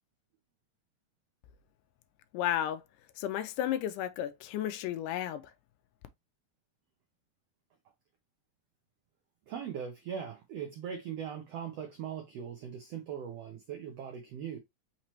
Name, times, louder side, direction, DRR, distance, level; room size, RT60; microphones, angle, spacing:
voice 1, 2.3-2.8 3.2-5.4, left 11 dB, 80° left, 2.0 m, -33 dB
voice 2, 9.5-14.6, right 8 dB, 85° right, 1.4 m, -40 dB
5.8 x 3.0 x 3.0 m
omnidirectional pair, 3.9 m